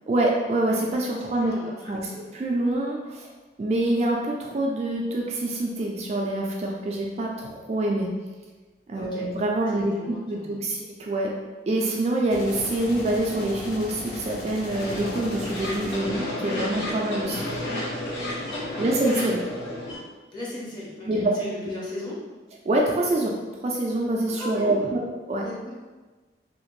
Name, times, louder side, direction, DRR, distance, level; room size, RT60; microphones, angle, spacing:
voice 1, 0.1-1.5 1.9-2.0 2.3-3.3 3.6-8.1 8.9-11.3 11.7-17.4 18.8-19.4 21.1-21.3 22.7-23.4 23.6-25.0 25.3-25.4, right 1 dB, 35° right, -1 dB, 0.3 m, -25 dB
voice 2, 1.3-2.3 9.0-9.3 9.7-10.8 18.4-18.9 20.3-22.2 24.3-24.9 25.4-25.7, left 1 dB, 25° left, -6 dB, 0.8 m, -37 dB
sound 1, 12.3-16.3, left 1 dB, 55° left, 0.5 m, -37 dB
sound 2, 14.7-20.0, left 1 dB, 75° left, 0.9 m, -31 dB
2.8 x 2.5 x 3.0 m, 1.3 s
head